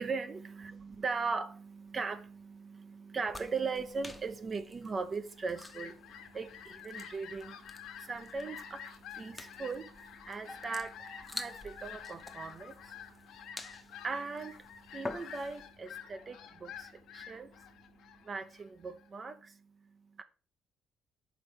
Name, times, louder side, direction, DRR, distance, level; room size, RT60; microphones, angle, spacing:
voice 1, 0.0-20.2, right 4 dB, 35° right, 0.8 m, -40 dB
sound 1, 3.3-15.7, left 2 dB, 10° left, 0.9 m, -49 dB
sound 2, 3.3-4.8 10.5-13.8, equal, 15° right, 1.1 m, -57 dB
Fowl, 5.1-19.1, left 8 dB, 75° left, 1.3 m, -49 dB
6.1 x 4.4 x 5.2 m
cardioid pair, 85°, 0 cm